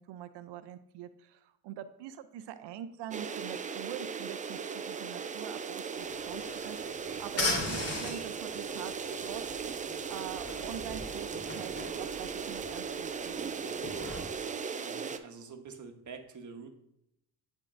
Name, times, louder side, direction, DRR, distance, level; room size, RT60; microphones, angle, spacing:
voice 1, 0.0-8.9 9.2-9.7 10.1-13.3, right 10 dB, 65° right, 11 dB, 0.6 m, -44 dB
sound 1, 3.1-15.2, right 6 dB, 20° right, 0.3 m, -38 dB
sound 2, 6.0-14.2, left 2 dB, 35° left, 2.3 m, -39 dB
voice 2, 14.8-16.7, right 5 dB, 40° right, 5 dB, 1.2 m, -47 dB
11.0 x 3.7 x 2.5 m, 0.79 s
supercardioid pair, 70°, 44 cm